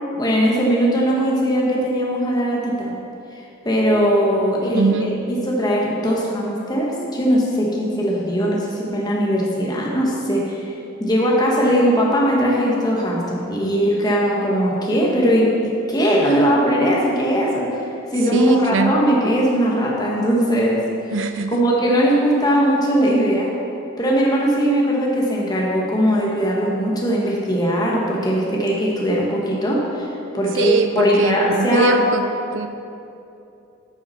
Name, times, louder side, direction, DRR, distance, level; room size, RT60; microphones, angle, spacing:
voice 1, 0.0-2.9 3.6-5.1 5.5-10.7 11.0-17.9 18.1-20.8 21.5-23.5 24.0-30.1 30.3-32.0, equal, 20° left, -3 dB, 1.3 m, -19 dB
voice 2, 4.7-5.1 16.3-16.5 18.3-19.0 21.1-21.6 30.6-32.3 32.5-32.7, right 4 dB, 70° right, 7 dB, 0.6 m, -22 dB
8.1 x 5.8 x 5.6 m, 2.7 s
head